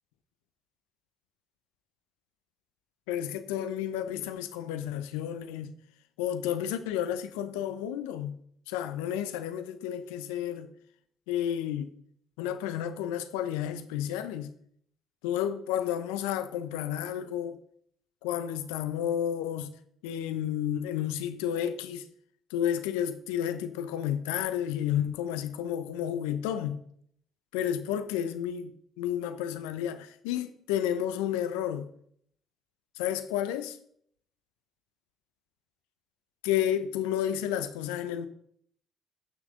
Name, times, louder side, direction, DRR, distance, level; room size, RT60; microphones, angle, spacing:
voice 1, 3.1-5.7 6.2-8.4 8.7-10.7 11.3-11.9 12.4-14.5 15.2-17.6 18.2-19.7 20.0-22.0 22.5-26.8 27.5-31.9 33.0-33.8 36.4-38.3, left 10 dB, 80° left, 0.8 m, -31 dB
16.0 x 6.1 x 3.8 m
hypercardioid pair, 50°, 0 cm